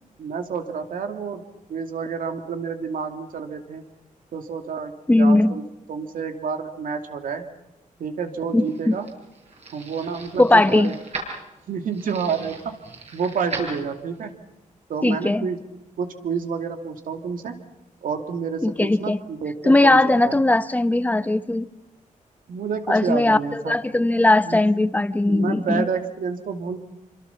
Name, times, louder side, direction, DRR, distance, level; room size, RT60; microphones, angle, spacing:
voice 1, 0.2-1.4 1.7-3.8 4.3-5.6 5.9-7.4 8.0-9.0 9.7-10.9 11.7-12.8 13.1-14.3 14.9-15.6 16.0-17.6 18.0-20.3 22.5-23.8 24.4-24.6 25.3-26.8, right 6 dB, 85° right, 2.6 m, -29 dB
voice 2, 5.1-5.6 8.5-9.0 10.4-10.9 15.0-15.5 18.6-19.2 19.6-21.7 22.9-25.9, left 2 dB, 10° left, 1.0 m, -19 dB
sound 1, 8.3-14.3, right 3 dB, 50° right, 7.6 m, -38 dB
28.0 x 26.0 x 5.8 m
wide cardioid pair, 120°, 14 cm